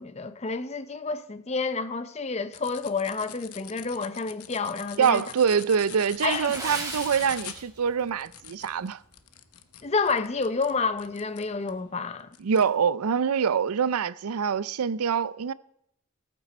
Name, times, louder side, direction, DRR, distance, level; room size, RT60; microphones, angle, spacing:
voice 1, 0.0-5.2 6.2-6.7 9.8-12.3, left 4 dB, 30° left, 0.6 m, -29 dB
sound 1, 2.5-11.8 12.3-12.7, left 11 dB, 90° left, 0.9 m, -44 dB
voice 2, 5.0-9.0 12.4-15.5, right 7 dB, 85° right, 0.5 m, -25 dB
Water / Splash splatter, 6.2-8.1 8.4-8.6 9.2-9.4 9.9-10.0, right 3 dB, 15° right, 2.2 m, -37 dB
19.0 x 8.5 x 4.3 m
head